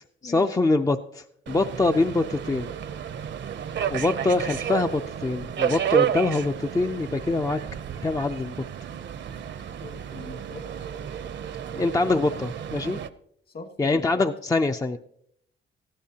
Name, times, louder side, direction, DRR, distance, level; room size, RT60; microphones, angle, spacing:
voice 1, 0.2-2.7 3.9-7.6 8.0-8.5 11.8-13.0 13.8-15.0, left 3 dB, 15° left, 7 dB, 0.4 m, -24 dB
Subway metro underground, 1.5-13.1, right 9 dB, 60° right, 0.7 m, -31 dB
voice 2, 9.8-10.9 11.7-12.1 13.5-14.2, left 3 dB, 45° left, 7 dB, 1.5 m, -42 dB
19.0 x 14.5 x 2.8 m, 0.72 s
cardioid pair, 110°, 21 cm